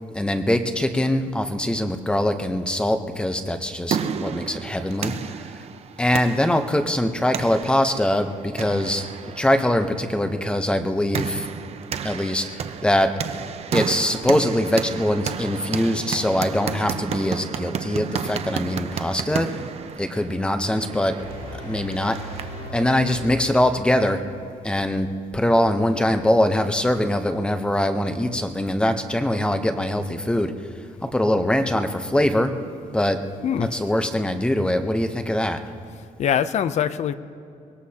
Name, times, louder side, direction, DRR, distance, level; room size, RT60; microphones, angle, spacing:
voice 1, 0.1-5.6 6.0-9.0 9.4-11.5 12.0-13.1 13.7-19.5 20.0-21.1 21.6-22.2 22.7-24.2 24.6-25.1 25.3-30.5 31.1-32.5 32.9-33.2 33.6-35.6, left 1 dB, 5° left, 7 dB, 0.8 m, -22 dB
sound 1, 3.5-22.7, right 7 dB, 45° right, 0.6 m, -32 dB
sound 2, 21.2-24.4, left 1 dB, 75° left, 3.8 m, -37 dB
voice 2, 33.4-33.7 36.2-37.1, left 9 dB, 55° left, 13 dB, 0.6 m, -23 dB
23.5 x 20.5 x 2.9 m, 2.4 s
cardioid pair, 155°, 14 cm